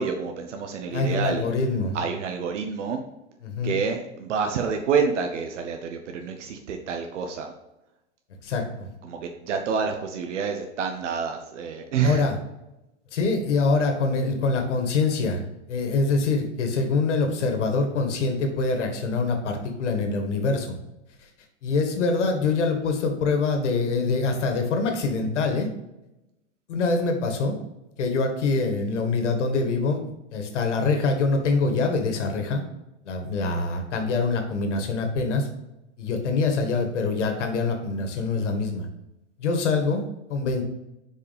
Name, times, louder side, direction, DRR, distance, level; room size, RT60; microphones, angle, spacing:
voice 1, 0.0-1.5 1.9-3.0 3.6-7.5 9.0-12.3, right 6 dB, 85° right, 5 dB, 1.0 m, -28 dB
voice 2, 0.9-2.0 3.4-3.8 8.4-8.9 12.0-12.4 13.1-15.4 15.7-20.8 21.2-21.3 21.6-25.7 26.7-27.6 28.0-30.0 30.3-32.6 33.1-35.5 36.0-38.9 39.4-40.0 40.3-40.6, left 3 dB, 80° left, 5 dB, 1.8 m, -24 dB
6.6 x 5.2 x 3.5 m, 0.93 s
supercardioid pair, 140°, 35 cm